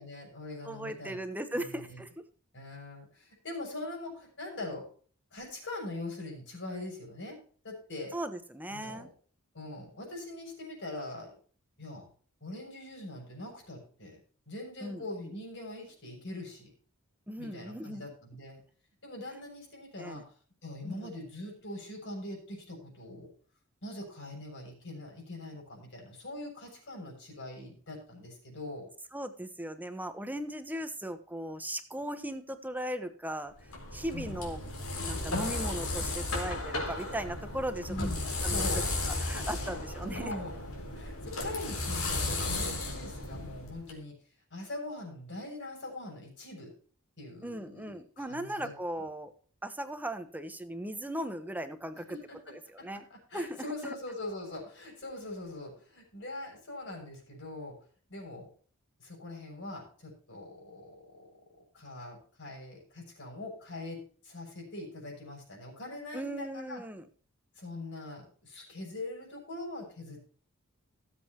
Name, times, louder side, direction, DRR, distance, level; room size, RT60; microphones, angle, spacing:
voice 1, 0.0-1.2 1.5-2.0 2.5-4.9 5.3-7.4 7.6-8.2 8.7-9.1 9.5-11.3 11.8-12.1 12.4-14.2 14.5-16.7 17.4-18.6 19.0-20.3 20.6-23.3 23.8-28.9 34.1-34.4 37.9-38.9 40.0-40.6 40.9-44.2 44.5-46.7 47.2-48.7 49.0-49.1 52.1-52.4 52.8-57.8 58.1-58.5 59.0-61.3 61.7-66.8 67.6-70.2, left 2 dB, 60° left, 1 dB, 6.6 m, -42 dB
voice 2, 0.6-2.1 8.1-9.1 14.8-15.3 17.3-18.0 20.0-20.2 20.8-20.9 29.1-33.5 33.9-34.6 35.0-37.9 38.4-38.8 39.2-40.3 47.4-49.3 49.6-52.2 52.5-53.1 53.3-53.7 66.1-67.1, right 1 dB, 10° right, 9 dB, 1.1 m, -38 dB
sound 1, 33.6-43.9, left 2 dB, 80° left, 4.4 m, -34 dB
18.0 x 7.9 x 3.0 m, 0.43 s
head